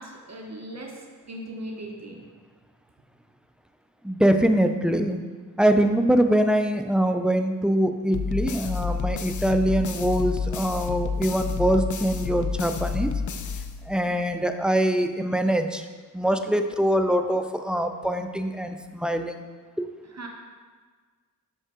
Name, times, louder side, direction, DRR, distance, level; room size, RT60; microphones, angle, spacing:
voice 1, 0.0-2.2 20.1-20.3, right 1 dB, 50° right, 1 dB, 0.9 m, -38 dB
voice 2, 4.0-5.2 5.6-13.1 13.9-15.9 16.1-19.4 19.8-19.9, right 1 dB, 5° right, 6 dB, 0.4 m, -23 dB
sound 1, 8.1-14.2, left 5 dB, 60° left, 0.5 m, -30 dB
5.8 x 5.3 x 3.7 m, 1.5 s
wide cardioid pair, 55°, 34 cm